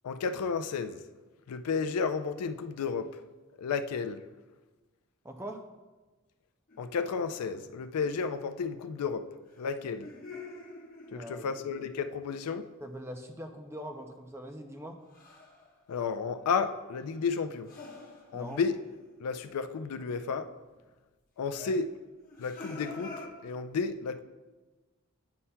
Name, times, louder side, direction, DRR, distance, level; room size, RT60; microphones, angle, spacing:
voice 1, 0.0-1.0 1.5-3.2 3.6-4.2 6.8-9.3 9.6-10.1 11.1-12.7 15.9-17.7 18.3-18.7 19.2-20.5 21.4-21.9 22.4-24.2, left 5 dB, 90° left, 0.4 m, -32 dB
voice 2, 5.2-5.6 11.1-11.5 12.8-15.0 18.3-18.6 21.6-21.8, equal, 10° right, 0.4 m, -42 dB
sound 1, 6.7-7.4 9.5-12.1 15.1-15.7 16.0-19.7 20.1-20.2 22.2-23.3, left 2 dB, 40° left, 1.1 m, -47 dB
9.5 x 5.6 x 2.2 m
head